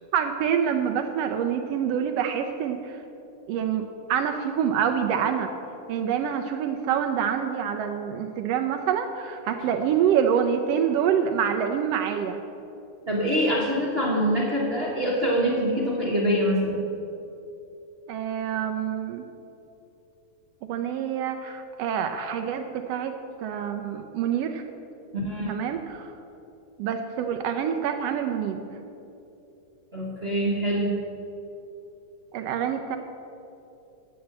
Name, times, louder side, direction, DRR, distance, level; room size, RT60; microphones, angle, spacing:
voice 1, 0.1-3.0 3.5-5.5 5.9-12.4 18.1-19.2 20.7-23.1 23.4-24.6 25.5-26.1 26.8-28.6 32.3-33.0, right 8 dB, 85° right, 5 dB, 1.4 m, -26 dB
voice 2, 13.1-16.8 25.1-25.5 29.9-31.0, equal, 45° right, -3 dB, 0.7 m, -24 dB
10.5 x 7.9 x 7.8 m, 2.9 s
omnidirectional pair, 3.5 m